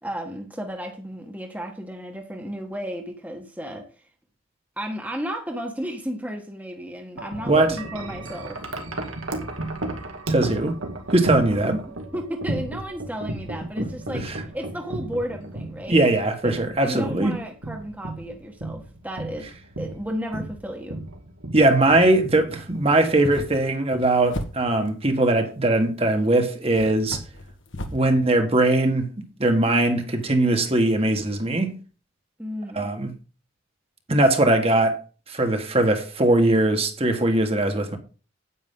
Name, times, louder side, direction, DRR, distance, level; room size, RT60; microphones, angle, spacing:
voice 1, 0.0-3.9 4.8-8.6 12.1-14.3 14.5-16.0 16.4-16.5 16.8-19.5 19.8-21.0 32.4-32.9, equal, 10° right, 1.4 m, -33 dB
Wind chime, 7.2-23.4, right 2 dB, 85° right, 2.3 m, -34 dB
voice 2, 7.5-7.8 10.3-10.8 11.1-11.8 13.8-13.9 14.2-14.4 15.9-17.3 21.5-27.2 27.9-31.7 32.7-33.1 34.1-35.0 35.3-38.0, right 2 dB, 30° right, 1.5 m, -20 dB
sound 1, 23.0-25.0 26.0-26.1 26.7-28.1, left 1 dB, 65° left, 1.5 m, -35 dB
9.6 x 9.3 x 3.8 m
head